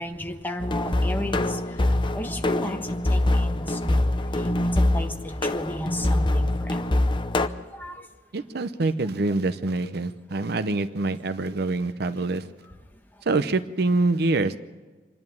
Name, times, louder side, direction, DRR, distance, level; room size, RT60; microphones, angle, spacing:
voice 1, 0.0-1.7 2.1-4.0 4.4-4.5 4.7-7.1 7.7-8.0 9.8-9.9 10.3-10.4, left 1 dB, 10° left, 4 dB, 1.3 m, -34 dB
sound 1, 0.6-7.5, left 1 dB, 30° left, 0.7 m, -24 dB
voice 2, 8.3-12.5 13.3-14.6, right 3 dB, 60° right, 12 dB, 0.7 m, -25 dB
26.0 x 11.0 x 9.3 m, 1.3 s
head